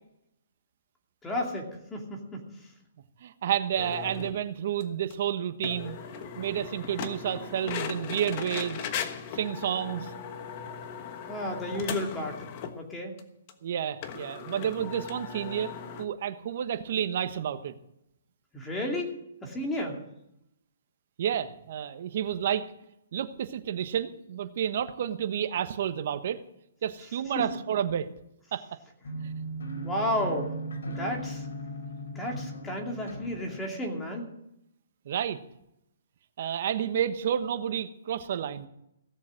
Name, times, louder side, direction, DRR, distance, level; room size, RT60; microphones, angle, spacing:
voice 1, 1.2-2.4 11.3-12.5 12.7-13.1 18.5-19.1 19.4-20.0 27.3-27.4 29.8-30.5 30.9-31.4 32.1-34.2, left 1 dB, 10° left, 0 dB, 2.6 m, -32 dB
voice 2, 3.2-6.0 6.4-8.8 9.3-10.1 13.6-17.7 21.2-22.7 23.1-26.4 26.8-28.1 28.5-28.6 35.0-35.4 36.4-38.7, right 9 dB, 55° right, 10 dB, 1.2 m, -30 dB
sound 1, 3.8-4.4 4.8-4.9 5.1-5.2 5.6-12.8 13.2-13.3 13.5-13.6 14.0-16.1, left 7 dB, 35° left, 1.3 m, -38 dB
sound 2, 29.0-33.6, right 1 dB, 75° left, 4.2 m, -37 dB
17.0 x 7.2 x 7.7 m, 0.82 s
hypercardioid pair, 150°, 0 cm